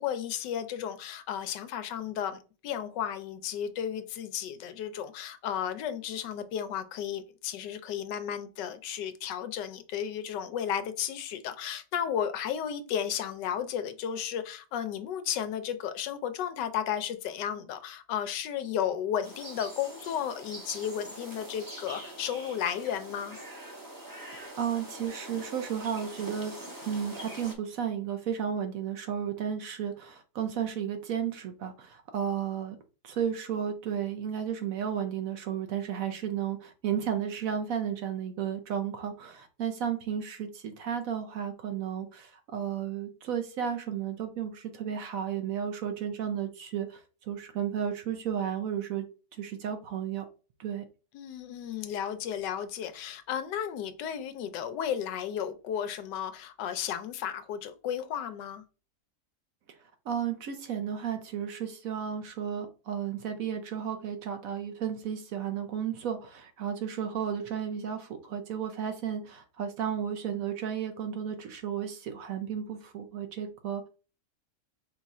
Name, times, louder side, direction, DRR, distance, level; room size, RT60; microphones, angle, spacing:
voice 1, 0.0-23.4 51.1-58.6, left 9 dB, 90° left, 10 dB, 1.3 m, -33 dB
sound 1, 19.2-27.5, right 1 dB, 15° right, 0.8 m, -44 dB
voice 2, 24.6-26.6 26.8-32.8 33.0-49.0 49.4-50.3 50.6-50.8 60.1-73.9, right 8 dB, 65° right, 6 dB, 0.9 m, -33 dB
5.4 x 2.4 x 4.1 m, 0.35 s
omnidirectional pair, 1.8 m